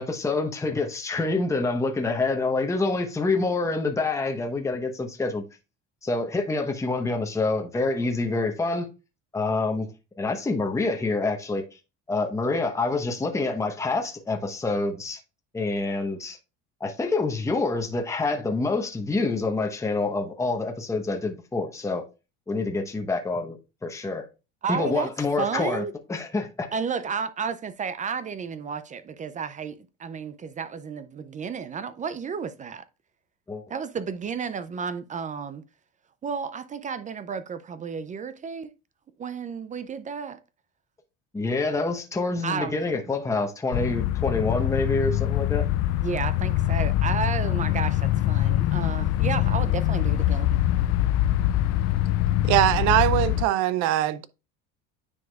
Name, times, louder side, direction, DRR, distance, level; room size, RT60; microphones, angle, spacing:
voice 1, 0.0-5.4 6.0-8.9 9.3-9.9 10.2-11.6 12.1-15.2 15.5-16.4 16.8-22.0 22.5-24.3 24.7-25.8 26.1-26.7 33.5-33.6 41.3-45.6, left 3 dB, 10° left, 0.9 m, -27 dB
voice 2, 24.6-25.1 25.4-25.9 26.7-32.9 33.7-35.6 36.2-38.7 39.2-40.4 42.4-42.8 46.0-50.5, right 6 dB, 25° right, 0.4 m, -32 dB
sound 1, 43.7-53.5, left 14 dB, 60° left, 0.4 m, -24 dB
voice 3, 52.4-54.3, right 14 dB, 70° right, 0.7 m, -22 dB
9.5 x 4.9 x 2.3 m
cardioid pair, 125°, 30 cm